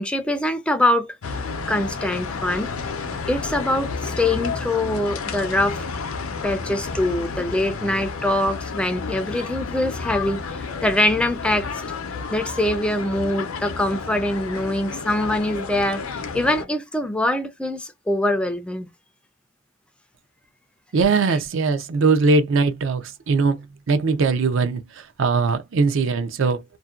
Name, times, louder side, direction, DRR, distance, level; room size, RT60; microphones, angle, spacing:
voice 1, 0.0-1.4 1.7-2.9 3.3-5.8 6.4-11.8 12.3-18.9, left 1 dB, 5° left, 0.3 m, -24 dB
sound 1, 1.2-16.6, left 4 dB, 80° left, 0.5 m, -31 dB
voice 2, 20.9-26.6, right 4 dB, 65° right, 0.5 m, -21 dB
2.5 x 2.1 x 2.3 m
head